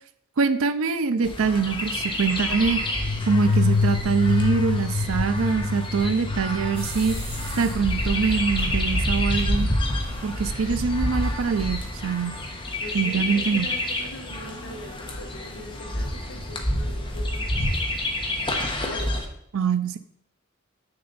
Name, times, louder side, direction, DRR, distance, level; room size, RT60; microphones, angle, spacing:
voice 1, 0.4-7.2 7.6-9.7 10.2-12.4 12.9-13.7 19.5-20.0, right 5 dB, 70° right, 12 dB, 0.5 m, -24 dB
Chirp tweet, 1.2-19.3, left 1 dB, 25° left, 1.1 m, -28 dB
sound 1, 2.8-11.2, left 4 dB, 45° left, 0.4 m, -28 dB
sound 2, 6.7-12.5, right 2 dB, 30° right, 1.9 m, -43 dB
voice 2, 12.8-17.8 18.8-19.2, left 1 dB, 60° left, -2 dB, 2.1 m, -41 dB
6.8 x 6.7 x 4.0 m, 0.72 s
head